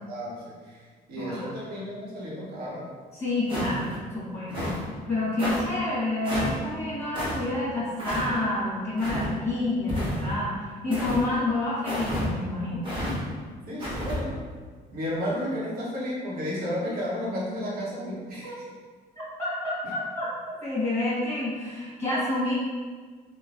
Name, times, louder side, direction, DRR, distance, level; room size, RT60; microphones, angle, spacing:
voice 1, 0.1-2.9 13.7-14.4 14.9-18.6, equal, 65° right, -6 dB, 0.9 m, -32 dB
voice 2, 1.2-1.5 3.1-4.8 5.1-12.9 18.4-18.6 19.4-20.3 20.6-22.6, left 2 dB, 15° left, -7 dB, 1.1 m, -28 dB
sound 1, 3.5-4.0 4.5-4.8 5.4-5.6 6.3-6.6 7.1-7.4 8.0-8.3 9.0-9.3 9.9-10.4 10.9-11.2 11.8-12.3 12.8-13.2 13.8-14.2, equal, 30° right, 0.9 m, -30 dB
3.0 x 2.0 x 2.5 m, 1.5 s
cardioid pair, 110°, 17 cm